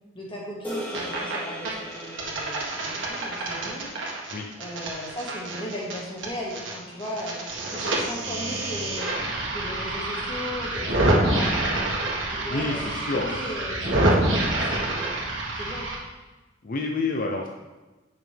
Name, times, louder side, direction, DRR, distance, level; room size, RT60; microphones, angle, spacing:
voice 1, 0.1-3.9 4.6-7.4 7.7-9.2 9.5-11.6 12.3-15.1 15.6-15.9, left 1 dB, 25° left, -3 dB, 1.8 m, -37 dB
sound 1, 0.6-5.1, equal, 10° left, 1.7 m, -39 dB
sound 2, 0.7-1.4 1.7-6.7 7.0-16.0, right 1 dB, 75° right, 1.8 m, -27 dB
voice 2, 12.4-13.4 16.6-17.5, left 3 dB, 45° left, 1 dB, 0.6 m, -28 dB
9.2 x 6.2 x 3.5 m, 1.2 s
head